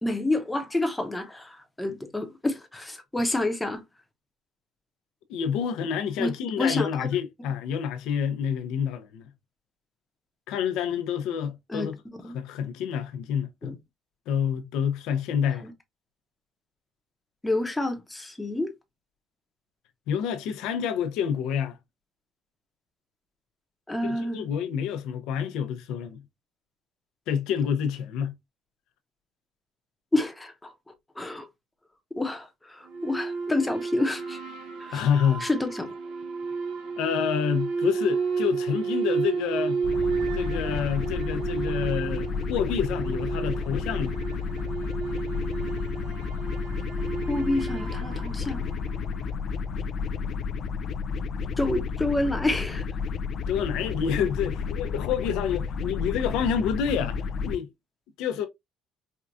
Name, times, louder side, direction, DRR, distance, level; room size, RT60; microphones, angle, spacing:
voice 1, 0.0-3.8 6.2-6.3 6.6-7.1 11.7-11.9 12.2-12.4 13.6-13.7 15.6-15.7 17.4-18.7 23.9-24.5 30.1-30.7 31.2-31.4 32.2-34.4 34.8-35.0 35.4-35.9 47.3-48.6 51.6-52.8, left 2 dB, 10° left, 0.9 m, -28 dB
voice 2, 5.3-9.3 10.5-11.9 12.2-13.7 14.3-15.7 20.1-21.8 24.0-26.2 27.3-28.3 34.9-35.5 37.0-39.8 40.3-44.2 53.5-57.2 57.4-57.7 58.2-58.5, left 8 dB, 80° left, 0.8 m, -28 dB
sound 1, 32.9-49.5, right 5 dB, 75° right, 1.1 m, -32 dB
sound 2, 39.8-57.6, left 5 dB, 50° left, 0.4 m, -31 dB
4.6 x 2.4 x 2.5 m
cardioid pair, 120°, 0 cm